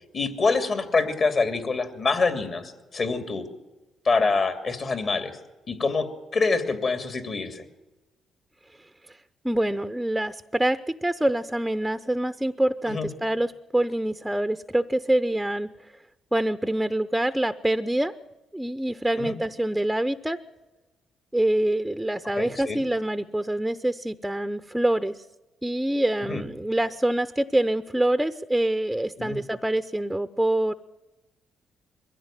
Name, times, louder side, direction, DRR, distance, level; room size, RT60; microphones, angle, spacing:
voice 1, 0.1-3.4 4.0-5.4 5.7-6.1 6.3-7.6 12.9-13.1 19.2-19.4 22.4-22.8 26.3-26.4 29.2-29.4, left 4 dB, 45° left, 8 dB, 2.7 m, -25 dB
voice 2, 8.8-9.2 9.4-15.7 16.3-18.1 18.5-20.4 21.3-25.2 25.6-30.7, right 1 dB, 5° right, 12 dB, 0.7 m, -25 dB
22.0 x 15.5 x 9.0 m, 1.1 s
cardioid pair, 90°, 0 cm